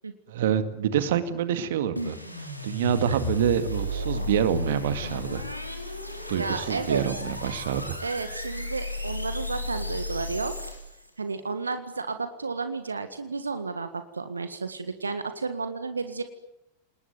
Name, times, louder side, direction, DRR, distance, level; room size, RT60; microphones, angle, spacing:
voice 1, 0.3-5.4 6.3-8.0, right 9 dB, 55° right, 11 dB, 2.1 m, -27 dB
sound 1, 2.0-11.1, left 1 dB, 90° left, 4.0 m, -33 dB
voice 2, 6.3-7.0 8.0-10.5 11.2-16.2, right 4 dB, 75° right, 9 dB, 1.8 m, -32 dB
29.5 x 20.0 x 9.4 m, 0.86 s
figure-of-eight pair, 90°, 0 cm